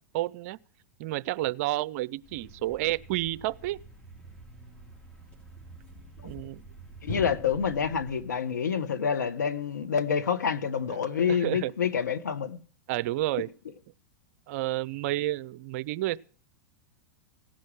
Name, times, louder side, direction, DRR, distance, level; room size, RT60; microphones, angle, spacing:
voice 1, 0.1-0.6 1.0-3.8 6.2-6.6 10.9-11.7 12.9-13.5 14.5-16.2, right 16 dB, 55° right, 0.6 m, -30 dB
Thump thud, 2.2-8.4, equal, 10° left, 4.0 m, -45 dB
voice 2, 7.0-12.6, left 7 dB, 90° left, 1.2 m, -28 dB
17.0 x 6.4 x 9.9 m
hypercardioid pair, 110°, 9 cm